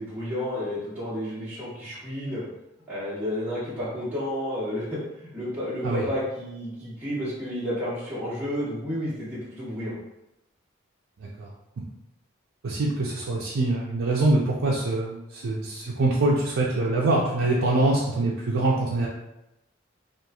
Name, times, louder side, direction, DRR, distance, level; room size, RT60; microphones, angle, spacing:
voice 1, 0.0-2.4 2.9-9.9, equal, 10° right, -11 dB, 1.1 m, -31 dB
voice 2, 12.6-19.1, right 2 dB, 80° right, -5 dB, 0.4 m, -24 dB
3.0 x 2.3 x 2.3 m, 0.89 s
head